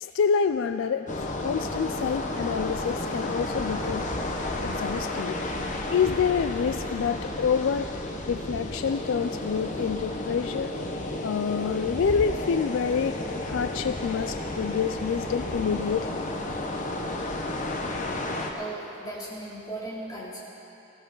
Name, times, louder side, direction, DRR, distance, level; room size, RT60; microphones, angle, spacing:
voice 1, 0.0-4.1 4.6-5.4 5.9-7.9 8.3-10.7 11.2-13.2 13.4-16.2, left 6 dB, 65° left, 10 dB, 0.3 m, -27 dB
sound 1, 1.1-18.5, left 1 dB, 35° left, 1.1 m, -32 dB
voice 2, 18.5-20.4, right 2 dB, 20° left, -6 dB, 2.8 m, -37 dB
18.5 x 15.5 x 3.9 m, 2.9 s
head